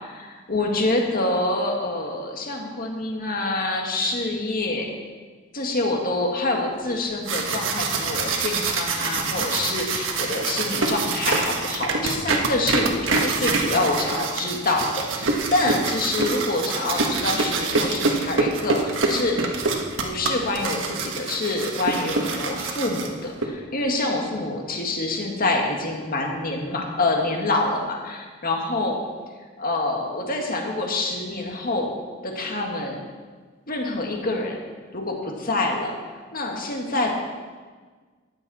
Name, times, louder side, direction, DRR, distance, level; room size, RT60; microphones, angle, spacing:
voice 1, 0.0-4.9 5.5-19.4 20.0-29.0 29.6-31.9 32.2-33.0 33.7-34.6 34.9-35.9 36.3-37.1, left 2 dB, 50° left, 1 dB, 1.9 m, -26 dB
sound 1, 7.0-23.5, right 3 dB, 80° right, 1.5 m, -25 dB
14.5 x 10.5 x 4.3 m, 1.5 s
head